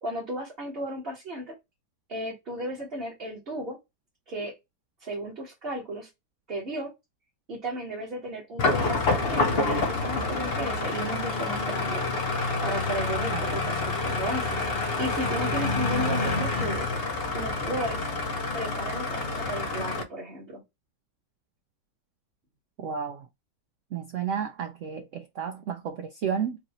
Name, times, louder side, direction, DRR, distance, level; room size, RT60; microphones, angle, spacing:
voice 1, 0.0-1.5 2.1-3.8 4.3-4.5 5.0-6.1 6.5-6.9 7.5-9.6 9.9-12.0 12.6-14.6 15.0-16.9 17.3-18.1 18.5-20.6, right 1 dB, 35° right, 1.6 m, -34 dB
sound 1, 8.6-20.0, left 3 dB, 60° left, 0.6 m, -28 dB
voice 2, 13.3-13.6 22.8-23.3 23.9-26.6, right 7 dB, 85° right, 0.6 m, -32 dB
4.7 x 2.7 x 2.9 m
omnidirectional pair, 1.9 m